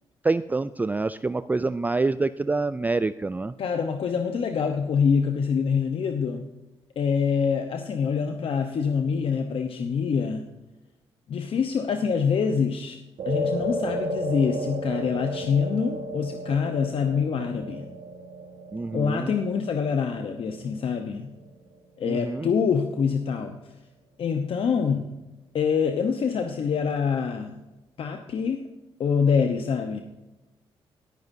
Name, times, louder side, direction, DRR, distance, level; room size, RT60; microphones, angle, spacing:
voice 1, 0.2-3.5 18.7-19.4 22.0-22.5, right 3 dB, 15° right, 14 dB, 0.3 m, -26 dB
voice 2, 3.6-6.4 7.0-10.5 11.3-13.0 13.2-17.9 18.9-21.3 22.0-23.6 24.2-25.2 25.5-27.6 28.0-28.6 29.0-30.0, left 6 dB, 60° left, 5 dB, 1.0 m, -25 dB
sound 1, 13.2-21.7, right 1 dB, 75° right, 2.4 m, -34 dB
18.5 x 9.1 x 2.7 m, 1.0 s
cardioid pair, 80°, 10 cm